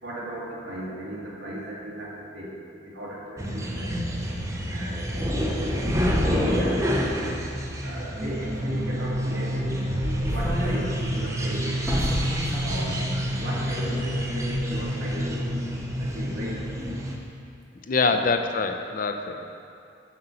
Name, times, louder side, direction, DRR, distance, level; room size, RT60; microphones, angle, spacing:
voice 1, 0.0-2.5 2.8-3.9 4.7-5.3 6.2-7.3 7.8-9.8 10.2-11.7 12.6-13.0 13.4-15.5 16.0-16.6 18.1-18.3, right 1 dB, 65° right, -6 dB, 1.9 m, -36 dB
sound 1, 3.4-17.2, equal, 15° right, 0.7 m, -28 dB
sound 2, 9.0-9.2 9.8-10.8 11.2-11.3 11.8-12.8 13.1-13.2 13.9-14.2 14.5-14.8, equal, 10° left, 1.3 m, -29 dB
voice 2, 17.9-19.6, left 4 dB, 45° left, 7 dB, 0.4 m, -25 dB
7.6 x 4.4 x 6.8 m, 2.5 s
head